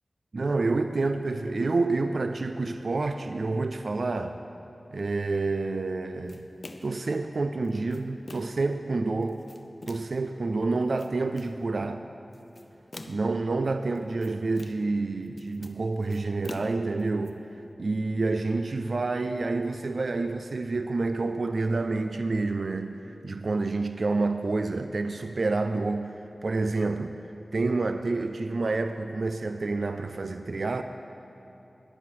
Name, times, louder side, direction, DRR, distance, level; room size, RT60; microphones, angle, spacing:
voice 1, 0.3-4.4 4.9-6.5 6.8-9.4 9.9-12.0 13.1-17.4 17.8-26.2 26.4-27.2 27.5-30.8, right 3 dB, 70° right, 8 dB, 0.4 m, -28 dB
sound 1, 6.3-7.0 7.6-8.7 9.2-10.2 10.8-11.6 12.3-13.4 14.0-15.0 15.3-17.3, left 2 dB, 45° left, 0.7 m, -46 dB
10.0 x 9.7 x 7.7 m, 2.9 s
wide cardioid pair, 80°, 0 cm